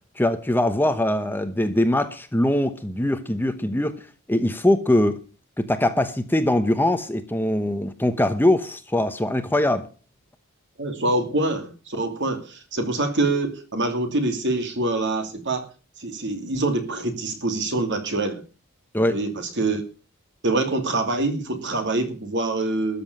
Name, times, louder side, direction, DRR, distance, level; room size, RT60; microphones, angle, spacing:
voice 1, 0.2-5.2 5.6-9.9 18.9-19.2, left 1 dB, 10° left, 1.0 m, -22 dB
voice 2, 10.8-15.7 16.0-18.4 19.1-19.8 20.4-23.0, right 2 dB, 55° right, 2.7 m, -25 dB
13.5 x 7.1 x 8.4 m
head